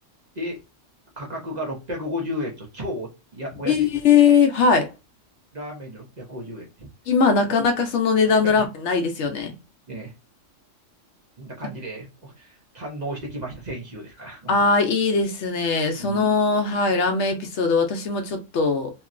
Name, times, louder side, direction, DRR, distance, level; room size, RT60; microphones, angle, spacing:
voice 1, 1.2-3.9 5.5-6.9 7.4-7.5 8.4-8.6 9.9-10.1 11.4-14.6 15.9-16.3, equal, 40° right, 0.9 m, -33 dB
voice 2, 3.6-4.9 7.1-9.5 11.6-11.7 14.5-18.9, left 5 dB, 70° left, 0.9 m, -20 dB
2.9 x 2.8 x 2.5 m
omnidirectional pair, 1.3 m